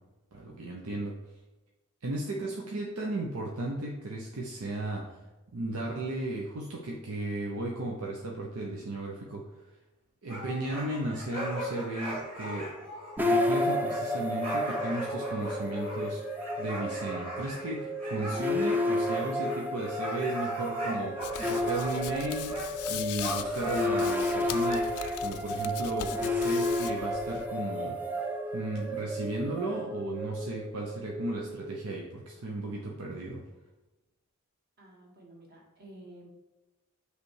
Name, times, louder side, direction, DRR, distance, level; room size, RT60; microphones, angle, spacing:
voice 1, 0.3-1.1 2.0-5.1 5.5-9.5 10.2-12.7 13.2-16.2 16.6-28.0 28.5-33.4, right 2 dB, 85° right, -2 dB, 0.8 m, -35 dB
sound 1, 10.3-22.2 22.4-22.7 23.2-25.1, equal, 25° right, 1.7 m, -39 dB
sound 2, 13.2-32.3, left 1 dB, 10° right, 0.5 m, -32 dB
Hands, 21.2-27.5, left 11 dB, 80° left, 0.4 m, -41 dB
voice 2, 34.8-36.3, right 1 dB, 45° right, -2 dB, 1.7 m, -51 dB
8.1 x 3.3 x 4.8 m, 1.1 s
head